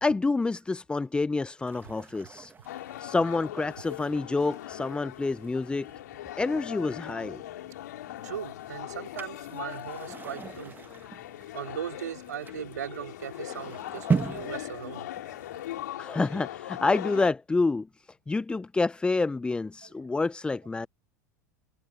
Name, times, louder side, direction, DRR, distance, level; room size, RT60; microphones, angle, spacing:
voice 1, 0.0-2.5 3.0-5.9 6.4-7.4 16.0-17.9 18.3-20.9, left 3 dB, 10° left, 0.4 m, -28 dB
sound 1, 1.6-15.9, right 5 dB, 20° right, 1.4 m, -39 dB
sound 2, 2.7-17.3, left 14 dB, 70° left, 2.7 m, -40 dB
voice 2, 8.2-10.8 11.5-15.1 19.8-19.9, right 10 dB, 80° right, 4.6 m, -38 dB
hypercardioid pair, 85°, 9 cm